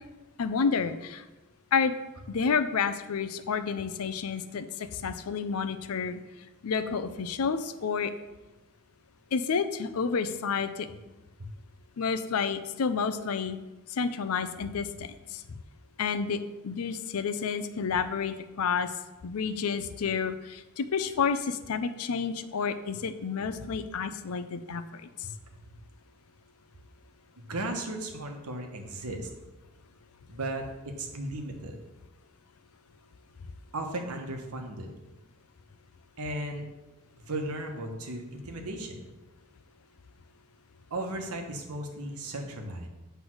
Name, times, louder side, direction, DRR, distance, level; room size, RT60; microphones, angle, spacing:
voice 1, 0.4-1.2 1.7-1.9 2.3-6.2 6.6-8.1 9.3-10.9 12.0-13.6 13.9-15.6 16.0-18.9 19.2-25.0, left 5 dB, 75° left, 10 dB, 0.5 m, -30 dB
voice 2, 27.4-29.3 30.3-31.8 33.7-34.9 36.2-36.6 37.3-39.1 40.9-42.9, right 1 dB, 80° right, 4 dB, 1.1 m, -36 dB
8.0 x 3.4 x 6.1 m, 1.1 s
head